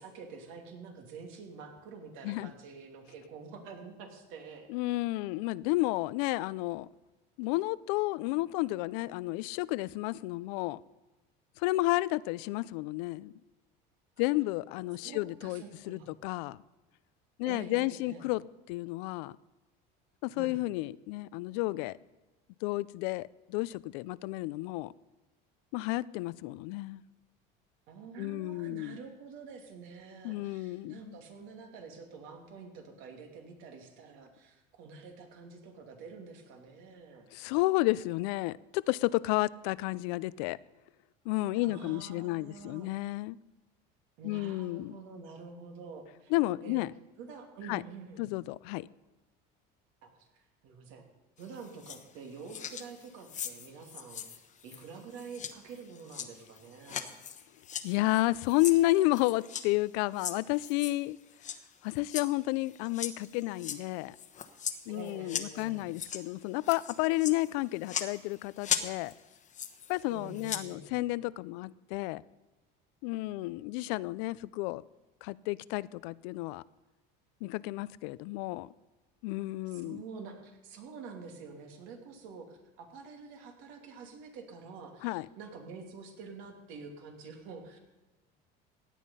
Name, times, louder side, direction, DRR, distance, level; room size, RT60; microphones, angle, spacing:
voice 1, 0.0-4.7 15.0-16.1 17.4-18.3 20.3-20.6 27.9-37.3 41.5-42.9 44.2-46.3 46.6-46.8 47.2-48.3 50.0-51.0 51.4-57.1 64.9-65.9 70.1-70.9 79.7-87.8, right 5 dB, 70° right, 3 dB, 2.7 m, -47 dB
voice 2, 4.7-6.9 7.4-10.8 11.6-13.3 14.2-16.6 17.4-18.4 18.7-19.4 20.2-22.0 22.6-24.9 25.7-27.0 28.2-29.0 30.2-31.2 37.3-40.6 41.3-43.4 44.2-44.9 46.3-46.9 47.7-47.8 48.2-48.9 57.8-61.2 61.8-64.2 64.9-69.1 69.9-72.2 73.0-74.8 75.2-76.6 77.4-78.7 79.2-80.0 85.0-85.3, left 19 dB, 80° left, 20 dB, 0.5 m, -31 dB
sound 1, 51.4-52.2 52.5-59.7 60.1-61.6 61.9-66.3 66.6-70.0 70.3-70.6, left 8 dB, 35° left, 1.1 m, -39 dB
16.5 x 9.3 x 5.5 m, 1.1 s
supercardioid pair, 115°, 21 cm